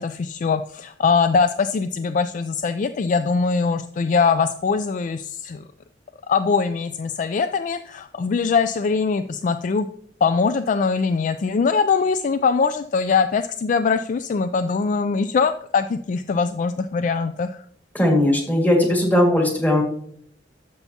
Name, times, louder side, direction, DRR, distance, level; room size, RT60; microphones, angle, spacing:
voice 1, 0.0-5.6 6.3-9.9 10.2-17.6, left 5 dB, 45° left, 10 dB, 0.3 m, -22 dB
voice 2, 17.9-19.8, left 1 dB, 10° left, 0 dB, 1.9 m, -18 dB
12.5 x 6.8 x 2.8 m, 0.65 s
head